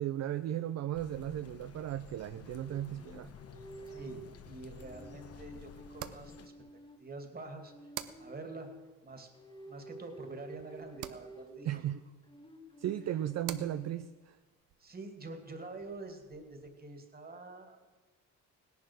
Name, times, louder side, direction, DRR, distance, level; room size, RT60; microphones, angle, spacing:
voice 1, 0.0-3.3 11.6-12.0 12.8-14.4, right 12 dB, 60° right, 11 dB, 0.6 m, -36 dB
sound 1, 0.9-6.5, left 7 dB, 50° left, 1.0 m, -52 dB
sound 2, 2.5-4.3 4.8-7.1 7.7-8.9 9.3-11.6 12.3-13.9, right 2 dB, 15° left, 1.7 m, -51 dB
voice 2, 3.9-6.5 7.0-7.7 8.2-8.7 9.0-9.3 9.7-11.8 14.8-17.8, right 3 dB, 30° right, 5 dB, 2.6 m, -46 dB
sound 3, 3.9-16.7, right 12 dB, 85° right, 0.9 m, -52 dB
17.0 x 10.5 x 6.3 m, 1.3 s
cardioid pair, 90°, 30 cm